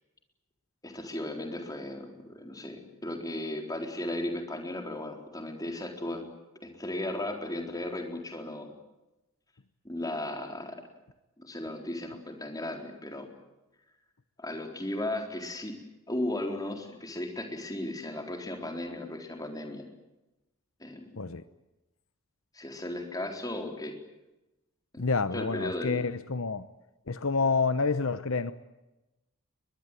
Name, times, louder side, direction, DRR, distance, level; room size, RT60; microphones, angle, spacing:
voice 1, 0.8-6.3 6.6-8.7 9.8-10.8 11.4-13.3 14.4-15.7 16.1-19.9 20.8-21.1 22.5-24.0 24.9-25.0 25.3-26.1, left 1 dB, 15° left, 4 dB, 4.0 m, -36 dB
voice 2, 25.0-26.6 27.1-28.5, left 4 dB, 65° left, 13 dB, 0.9 m, -28 dB
22.5 x 22.0 x 9.2 m, 1.0 s
head